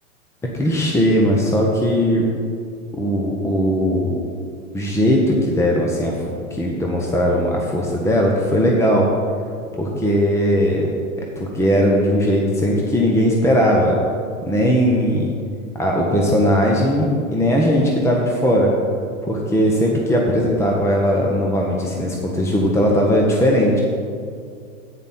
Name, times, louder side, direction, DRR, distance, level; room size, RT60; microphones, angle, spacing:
voice 1, 0.5-2.3 3.0-4.2 4.7-9.1 9.7-10.9 11.4-14.0 14.4-15.3 15.8-18.7 19.2-23.8, equal, 5° left, -1 dB, 1.0 m, -18 dB
10.5 x 9.2 x 4.4 m, 2.3 s
hypercardioid pair, 115°, 40 cm